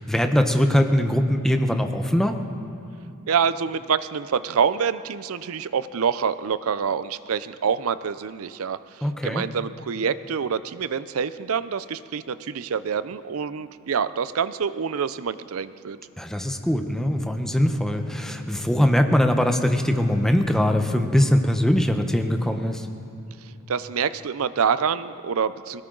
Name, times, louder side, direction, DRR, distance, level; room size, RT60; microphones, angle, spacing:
voice 1, 0.0-2.4 9.0-9.4 16.2-22.9, equal, ahead, 5 dB, 0.8 m, -21 dB
voice 2, 3.3-16.0 23.7-25.8, right 6 dB, 75° right, 14 dB, 0.5 m, -26 dB
20.5 x 17.5 x 3.9 m, 2.9 s
head